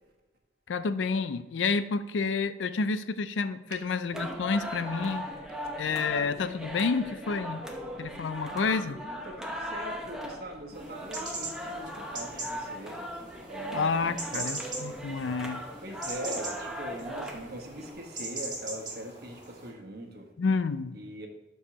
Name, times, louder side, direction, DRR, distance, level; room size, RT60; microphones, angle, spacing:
voice 1, 0.7-5.3 5.8-7.6 8.0-9.0 13.7-15.6 20.4-21.0, left 4 dB, 85° left, 13 dB, 0.5 m, -29 dB
sound 1, 4.1-17.9, equal, 5° right, 0.8 m, -39 dB
voice 2, 8.5-13.0 13.4-14.5 15.8-20.3 20.9-21.3, right 1 dB, 55° right, 2 dB, 1.3 m, -42 dB
sound 2, 10.7-19.7, right 2 dB, 25° right, 2.3 m, -40 dB
12.0 x 4.7 x 2.9 m, 1.1 s
head